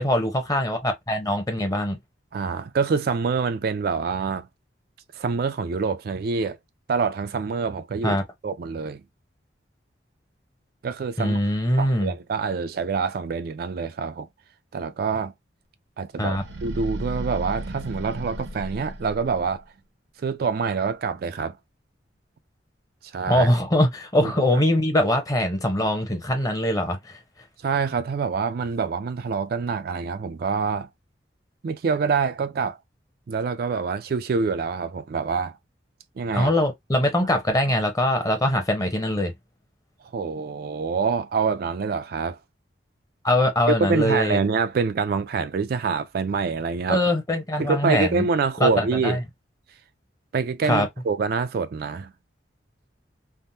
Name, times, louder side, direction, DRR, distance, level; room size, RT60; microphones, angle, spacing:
voice 1, 0.0-2.0 8.0-8.2 11.2-12.1 16.2-16.4 23.3-27.2 36.3-39.3 43.2-44.4 46.9-48.3 48.6-49.2 50.6-50.9, left 1 dB, 20° left, 0.8 m, -22 dB
voice 2, 2.3-4.5 5.1-6.6 6.9-9.0 10.8-11.4 11.8-14.3 14.7-15.3 16.0-19.6 20.2-21.6 23.1-23.5 24.2-24.4 27.6-30.9 31.6-32.8 33.3-35.6 36.2-36.5 40.1-42.4 43.8-47.0 47.6-49.2 50.3-52.1, right 5 dB, 55° right, 0.3 m, -26 dB
sound 1, 16.3-19.6, right 1 dB, 80° right, 0.9 m, -34 dB
3.4 x 2.1 x 2.7 m
head